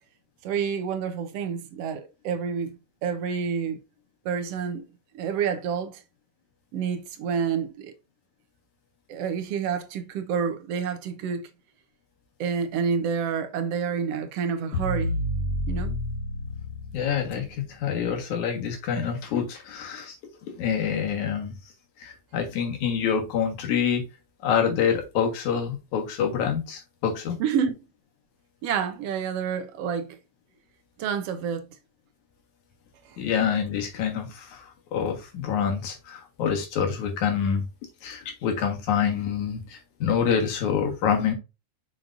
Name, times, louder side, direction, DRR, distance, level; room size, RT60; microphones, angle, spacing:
voice 1, 0.4-3.8 4.2-4.8 5.1-6.0 6.7-7.9 9.1-11.5 12.4-15.2 15.7-16.0 27.4-27.8 28.6-30.2 31.0-31.7 33.0-33.2, right 6 dB, 70° right, 1.7 m, -28 dB
sound 1, 14.7-17.8, left 1 dB, 30° left, 2.8 m, -30 dB
voice 2, 16.9-20.1 20.6-21.6 22.0-24.0 24.4-27.4 33.2-37.7 38.0-41.3, left 7 dB, 80° left, 3.0 m, -26 dB
6.4 x 5.9 x 2.6 m
omnidirectional pair, 3.4 m